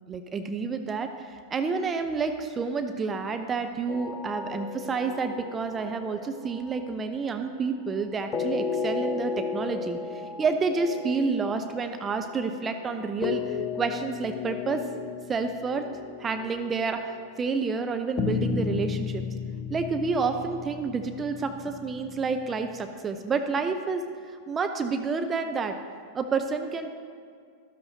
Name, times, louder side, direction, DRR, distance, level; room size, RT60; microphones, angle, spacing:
voice 1, 0.0-14.8 15.3-15.9 16.2-19.2 19.7-25.8 26.1-26.9, right 4 dB, 20° right, 7 dB, 0.5 m, -29 dB
sound 1, 3.9-7.5 8.3-17.3 18.2-22.8, left 5 dB, 30° left, 0.8 m, -34 dB
13.5 x 12.5 x 2.7 m, 2.1 s
figure-of-eight pair, 90°, 0 cm